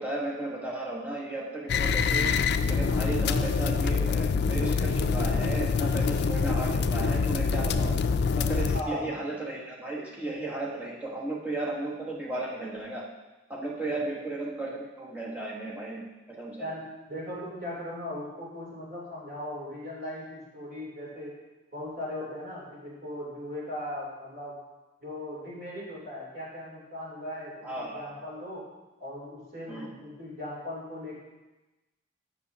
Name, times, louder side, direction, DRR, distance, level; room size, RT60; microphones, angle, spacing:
voice 1, 0.0-2.3 2.7-8.0 8.4-13.1 13.5-16.7 27.6-28.1 29.7-29.9, right 2 dB, 10° right, -4 dB, 1.4 m, -35 dB
sound 1, 1.7-8.8, left 5 dB, 55° left, 0.3 m, -25 dB
voice 2, 8.7-9.1 13.9-14.1 16.6-16.8 17.1-21.3 21.7-24.5 25.0-28.6 29.0-31.2, left 1 dB, 50° right, -5 dB, 3.3 m, -38 dB
13.5 x 5.9 x 2.9 m, 1.1 s
head